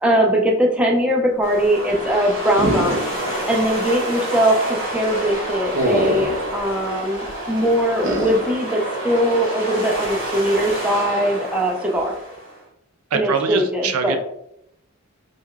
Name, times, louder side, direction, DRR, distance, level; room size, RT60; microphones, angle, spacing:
voice 1, 0.0-3.0 3.5-12.1 13.1-14.2, equal, 5° right, -1 dB, 0.5 m, -20 dB
sound 1, 1.4-12.6, right 1 dB, 20° right, 1.5 m, -29 dB
sound 2, 2.6-3.4 3.7-3.8 5.7-6.5 8.0-8.5, equal, 40° right, 0.8 m, -23 dB
voice 2, 13.1-14.2, right 5 dB, 85° right, 7 dB, 0.4 m, -23 dB
4.6 x 2.3 x 2.3 m, 0.76 s
head